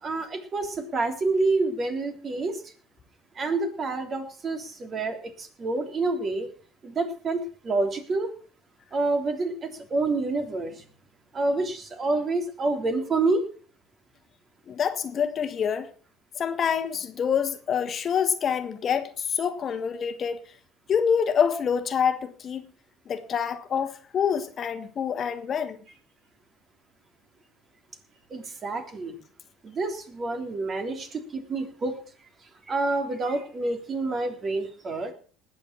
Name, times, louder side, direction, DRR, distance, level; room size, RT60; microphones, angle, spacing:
voice 1, 0.0-2.6 3.3-6.5 6.8-8.3 8.9-10.8 11.3-13.4 28.3-29.1 29.6-31.9 32.7-35.1, right 3 dB, 35° right, 3.4 m, -28 dB
voice 2, 14.7-15.9 16.3-20.4 20.9-22.7 23.1-25.8, left 7 dB, 45° left, 1.4 m, -26 dB
19.5 x 7.2 x 6.0 m
hypercardioid pair, 70°, 0 cm